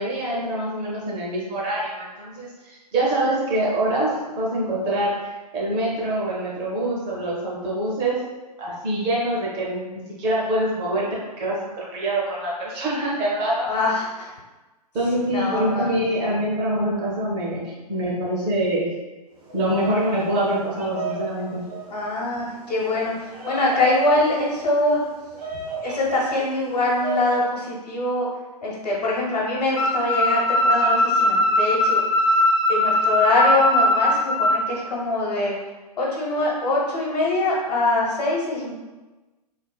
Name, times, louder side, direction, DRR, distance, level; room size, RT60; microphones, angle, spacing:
voice 1, 0.0-4.1 4.4-8.2 8.6-11.1 11.4-13.7 14.9-18.9 19.5-21.6, right 1 dB, 20° right, -5 dB, 0.5 m, -25 dB
voice 2, 13.7-14.3 15.3-15.9 21.9-25.0 25.8-28.3 28.6-32.0 32.7-35.5 36.0-38.7, left 2 dB, 75° left, -3 dB, 1.0 m, -23 dB
Bird vocalization bird call bird song, 19.4-27.4, right 4 dB, 60° right, 1.0 m, -35 dB
sound 1, 29.8-34.6, left 1 dB, 45° left, 0.5 m, -20 dB
3.2 x 2.1 x 2.2 m, 1.2 s
figure-of-eight pair, 130°, 21 cm